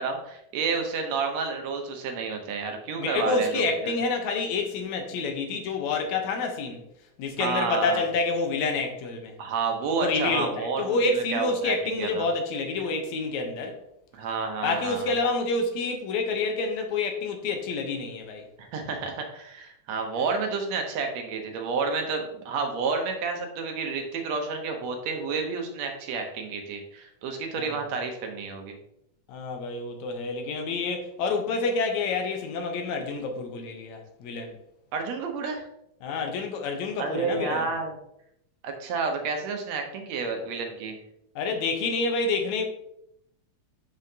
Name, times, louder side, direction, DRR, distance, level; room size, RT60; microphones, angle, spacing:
voice 1, 0.0-3.9 7.4-8.0 9.4-12.3 14.1-15.2 18.6-28.8 34.9-35.6 37.0-38.0 38.6-41.0, right 4 dB, 70° right, 2.0 m, -30 dB
voice 2, 3.0-6.8 7.2-9.3 10.0-13.8 14.6-18.5 27.6-27.7 29.3-34.5 36.0-37.7 41.4-42.6, left 3 dB, 75° left, 2.2 m, -28 dB
7.5 x 5.5 x 2.7 m
omnidirectional pair, 3.3 m